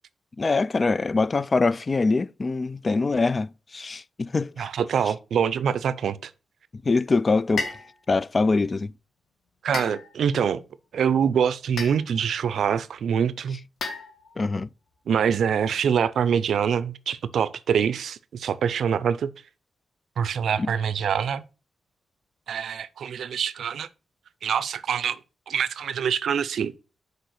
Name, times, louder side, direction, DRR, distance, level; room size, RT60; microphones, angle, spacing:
voice 1, 0.4-4.7 6.9-7.8 8.1-8.9 14.4-14.7 20.6-20.7, left 3 dB, 30° left, 0.3 m, -24 dB
voice 2, 4.6-6.3 9.6-10.6 10.9-13.6 15.1-19.3 20.2-21.4 22.5-23.9 24.4-25.2 25.5-26.7, right 7 dB, 80° right, 0.5 m, -25 dB
sound 1, 7.6-7.9 9.7-10.4 11.8-12.3 13.8-14.5, left 4 dB, 75° left, 1.9 m, -33 dB
6.6 x 5.0 x 6.2 m
wide cardioid pair, 135°, 0 cm